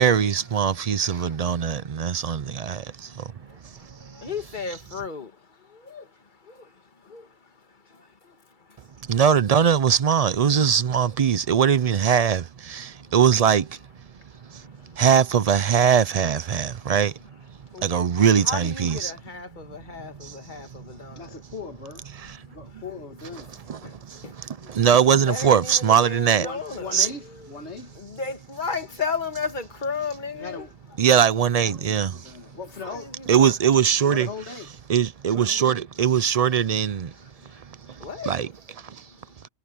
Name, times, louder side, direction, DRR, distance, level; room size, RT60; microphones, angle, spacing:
voice 1, 0.0-3.3 4.0-4.2 9.1-13.8 14.5-14.6 14.9-17.2 17.8-19.1 20.2-20.3 22.2-22.4 23.7-24.2 24.8-26.5 26.9-27.1 31.0-32.3 33.3-34.3 34.9-37.1 37.6-38.5 38.8-39.0, right 8 dB, 50° right, 0.5 m, -21 dB
voice 2, 4.2-5.3 5.9-6.0 7.1-7.2 17.7-17.9 18.2-21.2 23.8-23.9 24.2-24.3 25.1-27.5 28.0-30.7 32.9-33.5 38.0-38.3, left 5 dB, 45° left, 1.6 m, -33 dB
voice 3, 21.2-22.1 22.5-23.5 26.4-28.0 30.4-30.7 31.6-33.2 34.1-34.7, left 5 dB, 75° left, 2.3 m, -38 dB
omnidirectional pair, 1.2 m